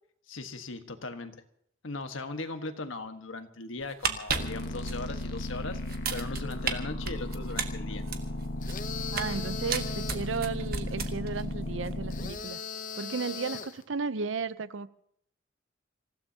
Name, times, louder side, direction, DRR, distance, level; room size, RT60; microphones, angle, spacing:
voice 1, 0.3-1.4 1.8-8.0, left 3 dB, 85° left, 7 dB, 1.4 m, -39 dB
sound 1, 3.8-5.5 5.9-6.7 7.0-9.4 9.7-11.4 11.7-11.9, right 6 dB, 50° right, 1.4 m, -33 dB
sound 2, 4.3-12.3, left 1 dB, 60° left, 1.4 m, -35 dB
sound 3, 8.6-10.3 12.1-13.8, left 5 dB, 40° left, 0.8 m, -39 dB
voice 2, 9.1-12.6 13.0-14.9, right 4 dB, 70° right, 15 dB, 0.6 m, -34 dB
27.0 x 16.0 x 2.8 m, 0.68 s
head